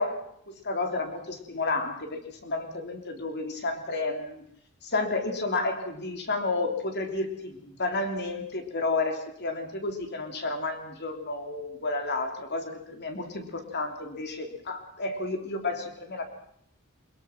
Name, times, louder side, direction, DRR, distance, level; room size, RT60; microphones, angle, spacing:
voice 1, 0.0-4.5 4.8-16.2, left 3 dB, 50° left, 5 dB, 3.5 m, -31 dB
22.5 x 21.5 x 6.0 m, 0.72 s
head